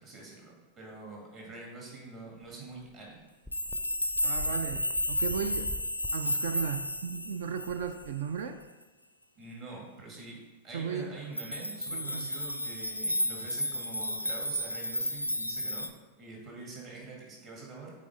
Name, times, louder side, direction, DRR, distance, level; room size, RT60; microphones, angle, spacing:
voice 1, 0.0-3.2 9.3-15.9 16.2-17.9, right 3 dB, 30° right, -2 dB, 2.0 m, -45 dB
sound 1, 3.5-8.0 11.4-15.9, left 1 dB, 90° left, 0.4 m, -32 dB
sound 2, 3.5-8.6, left 1 dB, 5° right, 0.6 m, -46 dB
voice 2, 4.2-5.8 6.1-8.6 10.7-11.1 11.9-12.3, right 7 dB, 60° right, 9 dB, 0.4 m, -35 dB
8.4 x 4.2 x 3.6 m, 1.2 s
figure-of-eight pair, 90°, 0 cm